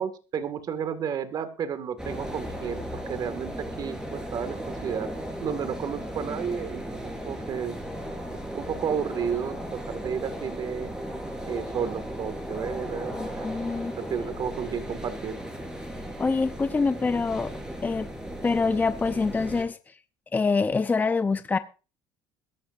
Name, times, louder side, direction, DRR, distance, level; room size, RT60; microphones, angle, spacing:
voice 1, 0.0-5.1 5.4-7.8 8.3-10.9 11.5-13.5 14.0-15.4, right 7 dB, 45° right, 10 dB, 2.0 m, -32 dB
sound 1, 2.0-19.6, equal, 10° right, 4.6 m, -36 dB
voice 2, 13.2-13.9 16.2-17.5 17.8-18.1 18.4-19.9 20.3-21.6, left 4 dB, 20° left, 10 dB, 0.7 m, -25 dB
22.0 x 12.0 x 2.6 m, 0.33 s
cardioid pair, 115°, 9 cm